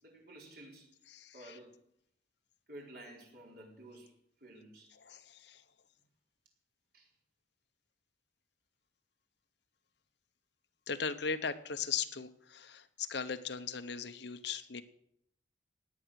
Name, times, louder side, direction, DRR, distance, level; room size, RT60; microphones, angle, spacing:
voice 1, 0.0-0.9 1.3-1.8 2.7-4.1 4.4-5.0 6.9-7.1, right 1 dB, 55° right, -1 dB, 4.5 m, -52 dB
voice 2, 1.1-1.6 4.9-5.6 10.9-14.8, left 6 dB, 65° left, 10 dB, 1.0 m, -38 dB
17.0 x 10.0 x 6.5 m, 0.72 s
head